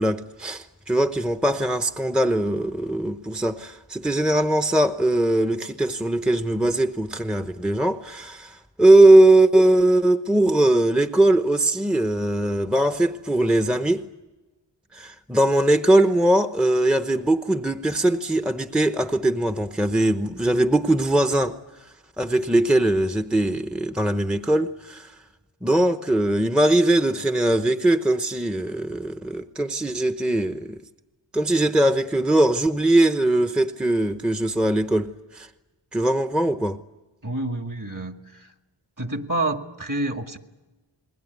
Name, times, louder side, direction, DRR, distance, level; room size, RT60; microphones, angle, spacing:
voice 1, 0.0-14.1 14.9-25.1 25.6-30.8 31.3-35.5 35.9-36.8, right 1 dB, ahead, 0.9 m, -20 dB
voice 2, 37.2-38.5 39.0-40.4, right 2 dB, 40° right, 2.2 m, -28 dB
29.0 x 20.5 x 9.4 m
wide cardioid pair, 45°, 49 cm